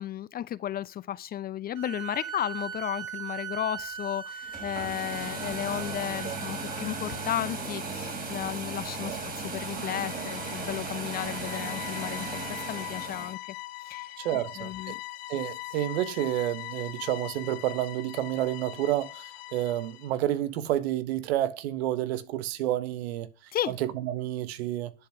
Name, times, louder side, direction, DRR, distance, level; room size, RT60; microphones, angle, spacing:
voice 1, 0.0-13.4 13.8-15.0 23.5-23.8, left 11 dB, 30° left, 0.6 m, -34 dB
sound 1, 1.7-7.4, right 7 dB, 45° right, 4.6 m, -40 dB
sound 2, 4.4-13.3, right 3 dB, 25° right, 4.3 m, -36 dB
sound 3, 9.4-20.2, left 20 dB, 60° left, 1.5 m, -42 dB
voice 2, 14.2-14.9 15.3-19.2 19.5-23.3 23.7-24.9, right 13 dB, 70° right, 1.5 m, -30 dB
11.0 x 7.6 x 5.9 m
hypercardioid pair, 100°, 33 cm